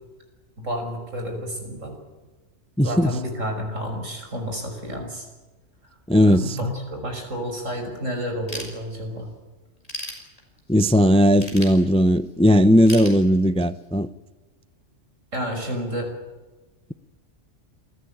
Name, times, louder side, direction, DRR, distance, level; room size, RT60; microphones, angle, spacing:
voice 1, 0.6-1.9 2.8-5.3 6.3-9.3 15.3-16.1, equal, 85° right, 6.2 m, -30 dB
voice 2, 2.8-3.1 6.1-6.6 10.7-14.1, equal, 5° left, 0.5 m, -17 dB
Ratchet pawl / Tools, 8.5-9.3 9.7-10.8 11.4-12.3 12.9-13.8, equal, 30° left, 5.3 m, -36 dB
27.5 x 14.5 x 8.9 m
omnidirectional pair, 1.3 m